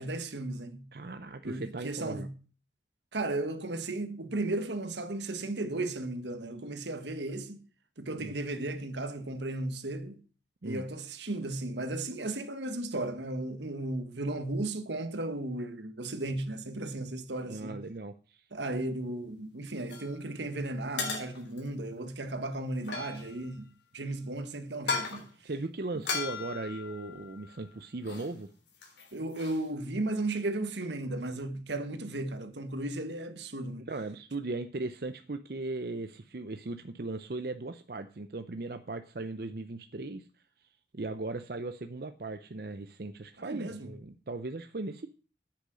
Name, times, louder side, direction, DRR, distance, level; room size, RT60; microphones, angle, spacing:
voice 1, 0.0-0.9 1.4-2.3 3.1-7.6 8.0-10.2 10.6-17.8 18.5-25.3 29.1-33.9 43.4-44.0, right 2 dB, 85° right, 1.6 m, -35 dB
voice 2, 0.9-2.3 8.1-8.3 10.6-10.9 17.5-18.5 25.4-28.5 33.9-40.3 40.9-45.1, right 2 dB, 60° right, 0.6 m, -38 dB
sound 1, 19.9-20.1 21.0-21.7 22.8-23.5 24.7-25.3 26.0-27.6 28.0-28.3 28.6-29.7, left 4 dB, 80° left, 3.6 m, -37 dB
10.0 x 8.6 x 6.3 m
head